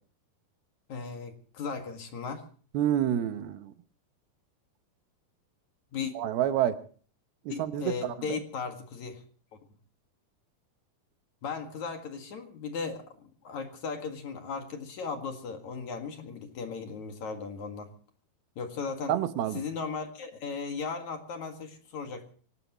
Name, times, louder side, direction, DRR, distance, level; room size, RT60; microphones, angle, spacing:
voice 1, 0.9-2.4 5.9-6.1 7.5-9.2 11.4-17.9 18.6-19.1 19.5-22.3, left 5 dB, 55° left, 4 dB, 3.0 m, -37 dB
voice 2, 2.7-3.7 6.2-6.8 7.5-8.4 19.1-19.6, right 11 dB, 80° right, 10 dB, 3.0 m, -28 dB
24.5 x 18.5 x 3.1 m, 0.43 s
omnidirectional pair, 4.4 m